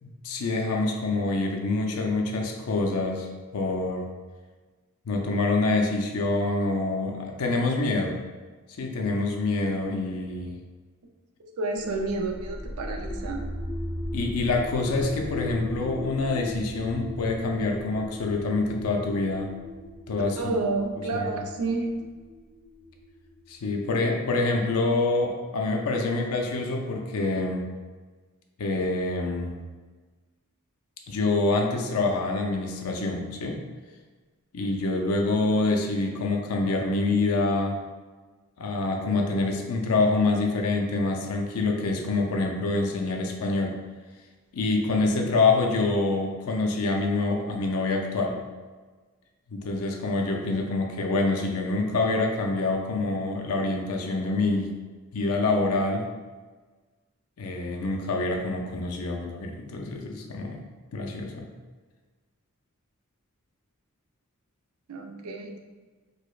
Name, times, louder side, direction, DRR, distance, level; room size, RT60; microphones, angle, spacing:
voice 1, 0.0-3.3 3.5-4.1 5.1-8.2 8.8-10.6 14.1-19.5 20.1-20.5 21.0-21.3 23.5-27.7 28.6-29.6 31.1-33.6 34.5-37.8 38.6-43.8 44.5-48.4 49.5-54.7 55.1-56.1 57.4-60.6 60.9-61.5, left 3 dB, 70° left, 2 dB, 0.4 m, -26 dB
voice 2, 11.6-13.4 20.4-21.9 64.9-65.6, right 3 dB, 75° right, 2 dB, 0.5 m, -30 dB
sound 1, 11.7-23.5, left 1 dB, 20° left, 0.9 m, -38 dB
4.8 x 2.0 x 2.3 m, 1.3 s
head